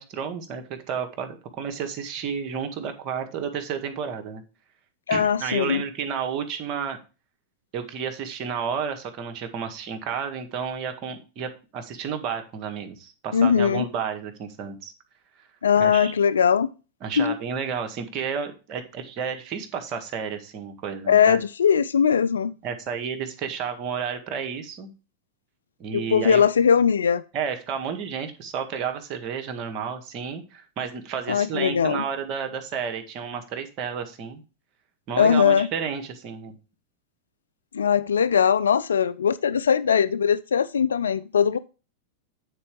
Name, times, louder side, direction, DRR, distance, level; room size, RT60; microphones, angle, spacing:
voice 1, 0.0-4.4 5.1-7.0 7.7-14.9 15.8-16.1 17.0-21.4 22.6-24.9 25.8-26.4 27.3-34.4 35.1-36.5, right 7 dB, 45° right, 6 dB, 1.7 m, -31 dB
voice 2, 5.1-5.8 13.3-13.8 15.6-16.7 17.2-17.3 21.1-22.5 25.9-27.2 31.3-32.0 35.2-35.7 37.7-41.6, left 7 dB, 80° left, 14 dB, 0.4 m, -20 dB
9.0 x 4.4 x 5.1 m, 0.32 s
hypercardioid pair, 100°, 0 cm